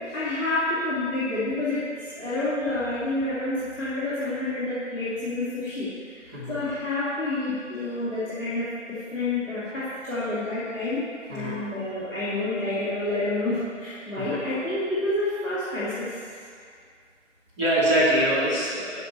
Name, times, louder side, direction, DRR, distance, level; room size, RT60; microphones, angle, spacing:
voice 1, 0.1-11.0 11.3-16.2, left 2 dB, ahead, -27 dB, 0.6 m, -29 dB
voice 2, 17.6-19.0, right 1 dB, 20° right, -9 dB, 2.4 m, -24 dB
10.5 x 5.6 x 4.4 m, 2.1 s
figure-of-eight pair, 155°, 38 cm